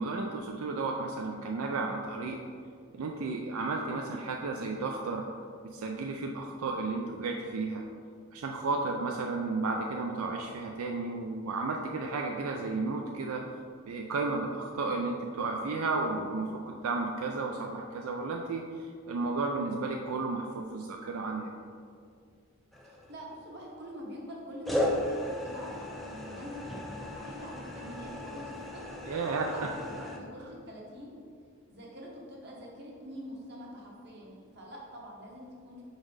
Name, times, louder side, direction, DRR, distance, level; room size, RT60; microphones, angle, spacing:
voice 1, 0.0-2.4 2.9-5.3 5.6-7.8 8.3-13.4 13.9-21.5 29.1-29.5, right 3 dB, 80° right, 1 dB, 0.4 m, -33 dB
sound 1, 22.7-23.4 24.6-30.2, left 1 dB, ahead, 0.4 m, -36 dB
voice 2, 22.8-28.8 29.1-29.2 29.5-31.1 31.7-35.8, equal, 50° right, -3 dB, 1.1 m, -45 dB
5.2 x 4.0 x 4.7 m, 2.2 s
head